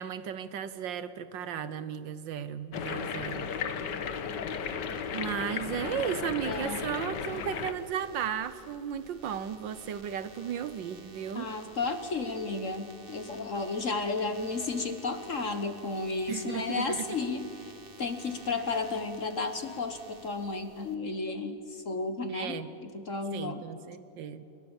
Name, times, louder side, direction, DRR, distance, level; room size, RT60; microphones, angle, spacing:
voice 1, 0.0-3.5 5.1-11.5 16.3-17.1 22.3-22.7 23.3-24.4, right 8 dB, 70° right, 13 dB, 1.5 m, -35 dB
sound 1, 2.7-7.7, left 6 dB, 60° left, 1.7 m, -35 dB
sound 2, 6.4-21.0, right 3 dB, 30° right, 1.6 m, -53 dB
voice 2, 6.5-6.8 11.3-17.5 18.0-23.7, left 3 dB, 45° left, 9 dB, 1.3 m, -33 dB
28.5 x 21.5 x 7.2 m, 2.9 s
omnidirectional pair, 2.2 m